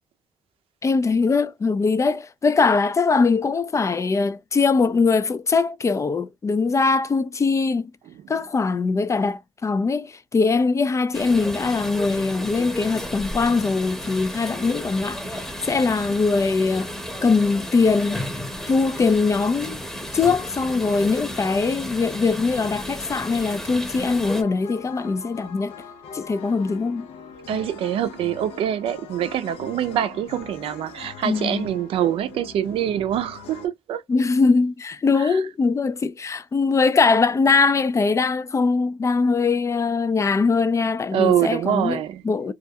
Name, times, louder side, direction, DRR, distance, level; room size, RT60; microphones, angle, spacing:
voice 1, 0.8-7.9 8.3-16.9 17.2-18.3 18.7-19.8 20.1-25.7 26.1-27.1 31.2-31.7 34.1-42.0 42.2-42.5, left 4 dB, 30° left, 0.4 m, -21 dB
sound 1, 11.1-24.4, equal, 5° left, 0.8 m, -33 dB
sound 2, 24.0-33.7, left 6 dB, 85° left, 0.6 m, -42 dB
voice 2, 27.5-34.0 35.2-35.4 41.1-42.2, right 10 dB, 75° right, 0.5 m, -24 dB
2.4 x 2.1 x 2.8 m
supercardioid pair, 70°, 10 cm